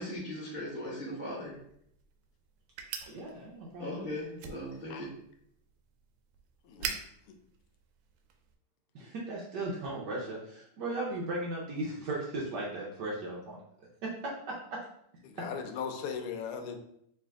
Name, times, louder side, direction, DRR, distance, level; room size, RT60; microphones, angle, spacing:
voice 1, 0.0-1.6 3.8-5.1, left 1 dB, 10° right, -7 dB, 0.5 m, -38 dB
sound 1, 1.4-8.5, right 6 dB, 90° right, 1.5 m, -45 dB
voice 2, 3.1-4.1 8.9-13.6 14.0-14.3 14.7-14.8, right 2 dB, 70° right, -4 dB, 1.0 m, -36 dB
voice 3, 15.2-16.8, left 6 dB, 85° left, 6 dB, 1.5 m, -38 dB
3.3 x 3.3 x 3.5 m, 0.72 s
omnidirectional pair, 2.4 m